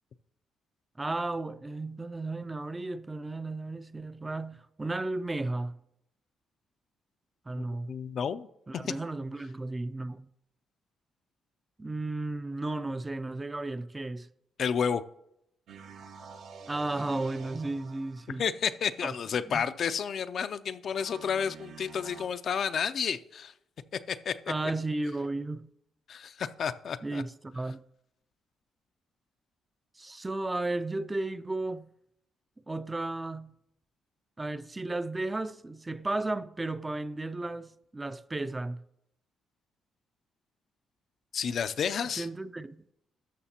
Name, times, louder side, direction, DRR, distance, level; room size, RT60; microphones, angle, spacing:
voice 1, 1.0-5.8 7.5-7.9 8.7-10.3 11.8-14.3 16.7-18.4 19.0-19.1 19.5-19.6 24.5-25.7 27.0-27.8 30.0-31.9 32.7-33.5 34.4-38.8 42.2-42.8, right 2 dB, 20° right, 0.4 m, -34 dB
voice 2, 7.9-8.5 14.6-15.0 18.4-23.5 24.1-24.4 26.1-27.2 41.3-42.3, left 7 dB, 55° left, 0.4 m, -31 dB
sound 1, 15.7-18.9 20.8-22.3, right 6 dB, 65° right, 0.7 m, -48 dB
12.5 x 6.3 x 2.8 m
cardioid pair, 90°, 0 cm